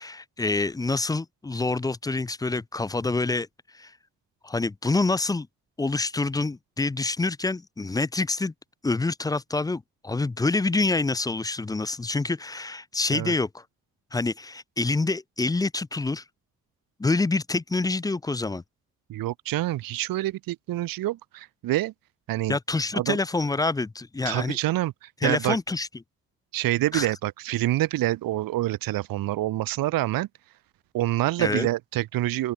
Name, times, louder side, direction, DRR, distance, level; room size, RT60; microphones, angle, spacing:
voice 1, 0.0-3.5 3.7-3.9 4.4-5.5 5.8-8.5 8.8-13.6 14.1-16.2 17.0-18.6 22.5-24.6 25.2-25.9 26.9-27.1 31.4-31.7, left 3 dB, 10° left, 0.4 m, -26 dB
voice 2, 19.1-21.9 22.3-22.6 22.9-23.2 24.2-25.6 26.5-30.3 30.9-32.5, right 15 dB, 60° right, 0.8 m, -27 dB
open air
hypercardioid pair, 40°, 40 cm